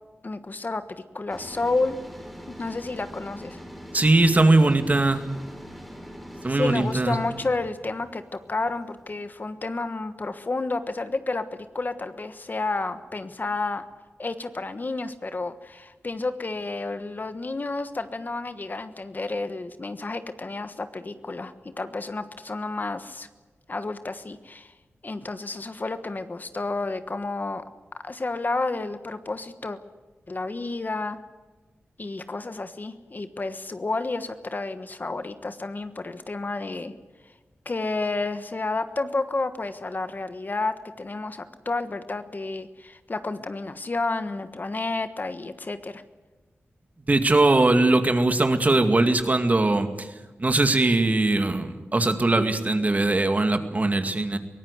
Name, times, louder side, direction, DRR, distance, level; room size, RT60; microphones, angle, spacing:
voice 1, 0.2-0.8 1.1-2.0 2.5-3.6 6.5-13.8 14.2-23.3 23.7-24.7 25.0-27.6 28.0-29.8 30.3-31.2 32.0-36.9 37.6-46.0, left 3 dB, 40° left, 10 dB, 1.3 m, -30 dB
sound 1, 1.3-9.3, equal, ahead, 4.0 m, -43 dB
voice 2, 3.9-5.2 6.4-7.2 47.1-50.1 50.4-54.4, right 2 dB, 35° right, 7 dB, 2.2 m, -20 dB
22.5 x 18.0 x 8.2 m, 1.3 s
wide cardioid pair, 80°, 5 cm